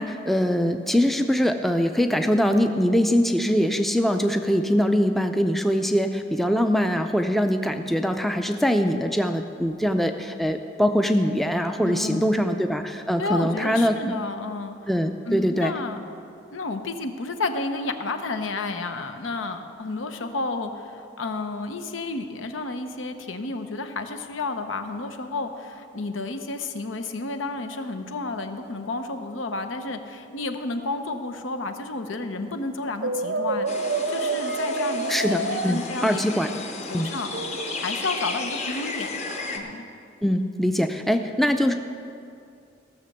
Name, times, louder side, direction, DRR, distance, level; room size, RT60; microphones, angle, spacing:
voice 1, 0.0-14.0 14.9-15.7 35.1-36.5 36.9-37.1 40.2-41.7, equal, ahead, 6 dB, 0.4 m, -23 dB
voice 2, 11.8-12.4 13.2-14.8 15.3-16.0 16.5-36.2 36.9-37.3 37.8-39.8, left 3 dB, 90° left, 7 dB, 0.9 m, -31 dB
Brass instrument, 33.0-35.8 37.3-37.9, right 3 dB, 60° right, 0.6 m, -28 dB
sound 1, 33.7-39.6, left 3 dB, 35° left, 0.9 m, -33 dB
16.0 x 6.7 x 6.6 m, 2.5 s
head